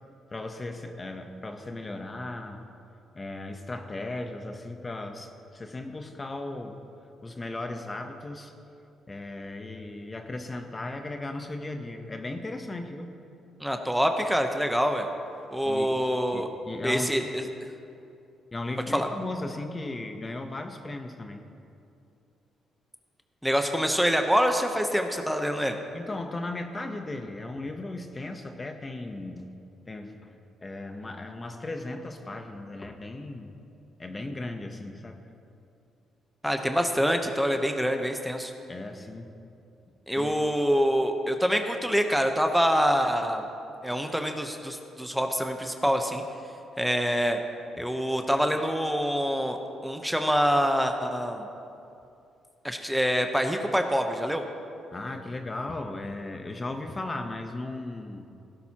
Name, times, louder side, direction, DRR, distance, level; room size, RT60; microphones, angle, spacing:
voice 1, 0.3-2.6 3.1-6.8 7.2-8.5 9.1-13.2 15.7-16.0 16.3-17.3 18.5-21.4 25.9-29.4 29.9-30.3 30.6-33.5 34.0-35.2 38.7-39.3 40.2-40.3 54.9-58.3, left 2 dB, 25° left, 5 dB, 0.9 m, -36 dB
voice 2, 13.6-15.1 15.5-16.5 16.8-17.5 18.9-19.1 23.4-25.8 36.4-38.5 40.1-43.4 43.8-46.2 46.8-47.4 47.8-49.6 49.8-51.5 52.6-54.4, equal, ahead, 5 dB, 0.9 m, -25 dB
17.0 x 11.5 x 2.9 m, 2.6 s
cardioid pair, 90°, 0 cm